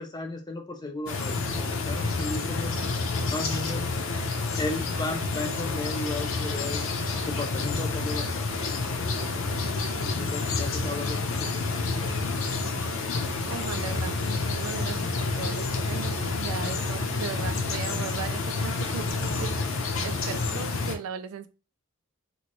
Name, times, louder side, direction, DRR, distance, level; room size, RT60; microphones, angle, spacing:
voice 1, 0.0-2.7 3.2-3.8 4.5-9.5 9.8-11.6 12.0-12.3, left 2 dB, 20° left, 4 dB, 0.5 m, -36 dB
sound 1, 1.1-21.0, left 3 dB, 65° left, 0.6 m, -29 dB
voice 2, 13.5-19.6 20.0-21.5, right 6 dB, 75° right, 11 dB, 0.4 m, -37 dB
2.9 x 2.6 x 3.0 m, 0.33 s
head